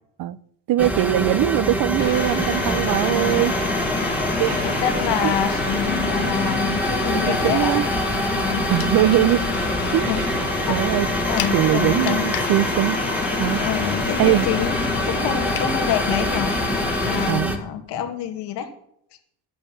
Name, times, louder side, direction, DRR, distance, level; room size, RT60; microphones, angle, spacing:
voice 1, 0.7-3.5 4.4-4.7 5.2-5.3 7.1-7.9 8.7-9.4 9.9-10.4 10.7-11.1 11.5-13.0 13.4-13.6 14.2-14.5 17.3-17.6, right 14 dB, 55° right, 0.5 m, -21 dB
sound 1, 0.8-17.6, equal, 5° right, 1.2 m, -26 dB
Mechanical fan, 2.0-17.3, left 5 dB, 25° left, 1.5 m, -28 dB
voice 2, 4.5-7.7 8.3-8.7 10.1-10.2 10.7-10.8 11.3-12.3 13.6-14.8 15.0-16.5 17.0-18.7, left 9 dB, 75° left, 2.1 m, -27 dB
sound 2, 8.8-15.7, left 12 dB, 60° left, 1.0 m, -38 dB
12.5 x 8.5 x 7.2 m
cardioid pair, 175°, 42 cm